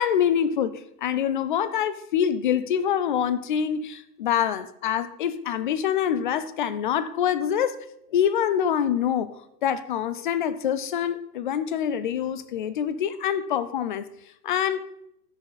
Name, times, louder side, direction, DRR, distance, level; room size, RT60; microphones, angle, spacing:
voice 1, 0.0-7.8 8.1-9.3 9.6-14.0 14.4-14.9, left 9 dB, 35° left, 14 dB, 0.4 m, -25 dB
13.5 x 6.2 x 4.1 m, 0.78 s
hypercardioid pair, 140°, 48 cm